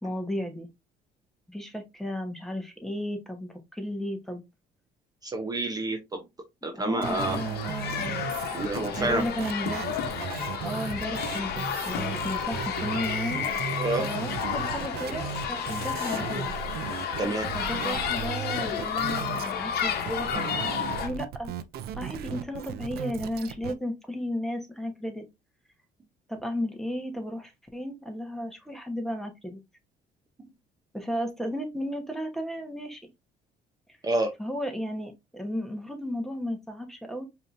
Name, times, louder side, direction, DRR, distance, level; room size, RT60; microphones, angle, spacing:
voice 1, 0.0-0.7 1.5-4.4 6.8-8.2 9.0-9.9 10.6-13.4 14.0-16.5 17.5-21.5 22.0-25.2 26.3-29.6 30.9-33.1 34.4-37.3, equal, ahead, 5 dB, 1.1 m, -34 dB
voice 2, 5.2-6.2 6.6-7.4 8.5-9.2 13.8-14.0 17.2-17.5 34.0-34.3, right 2 dB, 20° right, 4 dB, 0.7 m, -28 dB
sound 1, 7.0-21.1, left 7 dB, 70° left, 0.9 m, -31 dB
sound 2, 7.0-19.5 19.8-23.7, right 9 dB, 70° right, 0.5 m, -36 dB
5.0 x 2.9 x 2.6 m, 0.22 s
cardioid pair, 110°, 17 cm